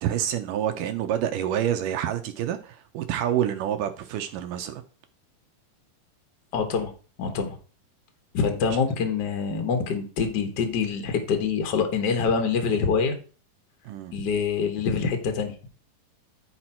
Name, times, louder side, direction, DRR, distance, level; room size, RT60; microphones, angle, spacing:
voice 1, 0.0-4.8 13.8-14.1, right 10 dB, 75° right, 2.2 m, -27 dB
voice 2, 6.5-6.9 7.2-7.6 8.3-13.1 14.1-15.5, left 5 dB, 85° left, 0.9 m, -25 dB
10.5 x 4.6 x 4.3 m
omnidirectional pair, 4.0 m